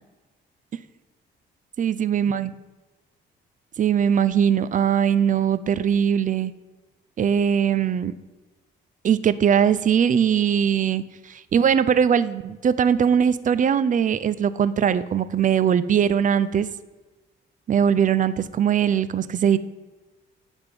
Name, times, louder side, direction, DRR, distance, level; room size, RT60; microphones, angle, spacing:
voice 1, 1.8-2.5 3.8-6.5 7.2-8.1 9.0-16.7 17.7-19.6, right 8 dB, 40° right, 15 dB, 0.5 m, -21 dB
10.5 x 3.6 x 5.9 m, 1.2 s
cardioid pair, 90°, 20 cm